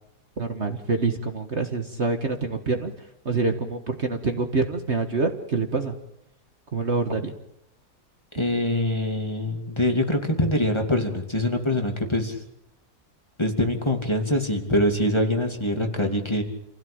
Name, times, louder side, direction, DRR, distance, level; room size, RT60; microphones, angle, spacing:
voice 1, 0.4-5.9 6.7-7.3, right 3 dB, 45° right, 6 dB, 1.9 m, -26 dB
voice 2, 8.4-12.4 13.4-16.4, left 1 dB, 15° left, 3 dB, 2.8 m, -24 dB
28.0 x 16.5 x 8.8 m, 0.82 s
omnidirectional pair, 1.6 m